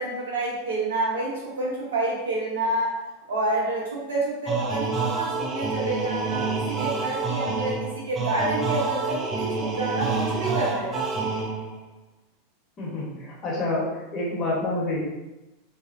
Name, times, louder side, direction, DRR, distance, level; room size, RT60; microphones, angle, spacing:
voice 1, 0.0-3.0 3.3-11.1, right 2 dB, 75° right, -5 dB, 1.0 m, -28 dB
sound 1, 4.5-11.8, right 4 dB, 20° right, 0.5 m, -28 dB
voice 2, 12.8-15.0, left 2 dB, 35° left, -5 dB, 1.1 m, -28 dB
2.6 x 2.5 x 2.6 m, 1.0 s
hypercardioid pair, 90°, 0 cm